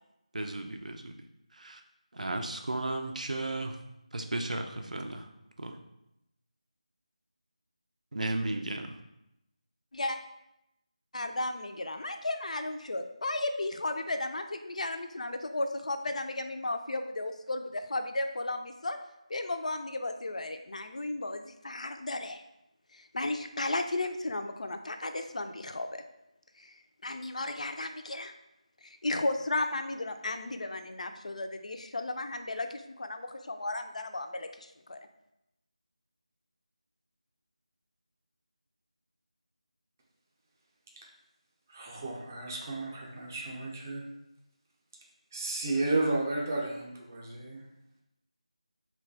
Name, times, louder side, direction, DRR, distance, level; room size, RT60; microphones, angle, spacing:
voice 1, 0.3-1.1 1.5-1.8 2.1-3.8 4.1-5.3 5.6-5.8 8.1-9.0, right 2 dB, 75° right, 5 dB, 0.4 m, -34 dB
voice 2, 11.1-19.0 19.3-22.4 23.1-26.0 26.6-26.7 27.0-28.3 29.0-35.0, left 2 dB, 65° left, 7 dB, 0.3 m, -34 dB
voice 3, 41.7-44.0 45.3-47.6, right 2 dB, 25° right, -1 dB, 0.5 m, -32 dB
2.9 x 2.2 x 3.9 m, 0.86 s
figure-of-eight pair, 170°, 4 cm